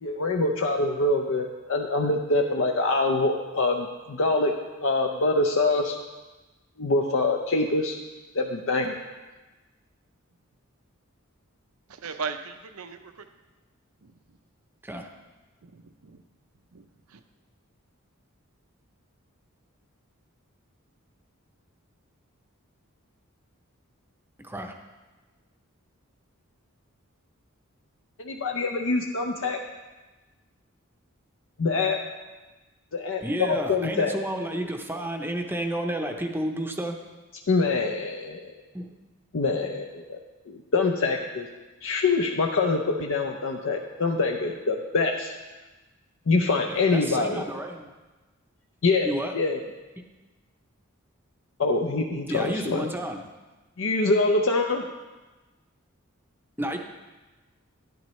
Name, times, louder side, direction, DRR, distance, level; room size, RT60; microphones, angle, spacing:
voice 1, 0.0-4.5 4.8-6.0 6.8-7.9 8.3-9.0 28.2-29.6 31.6-32.0 32.9-34.1 37.5-38.4 39.3-40.2 40.5-41.5 41.8-45.3 46.3-47.4 48.8-49.6 51.6-52.9 53.8-54.8, left 3 dB, 65° left, 2 dB, 0.6 m, -25 dB
voice 2, 11.9-13.1 15.6-16.2 16.7-16.9 17.1-17.2, right 5 dB, 85° right, 8 dB, 0.7 m, -37 dB
voice 3, 24.4-24.8 33.2-37.0 38.7-38.9 46.7-47.9 49.0-49.3 52.3-53.2 56.6-56.8, right 1 dB, 10° right, 4 dB, 0.7 m, -31 dB
10.5 x 10.0 x 3.1 m, 1.2 s
head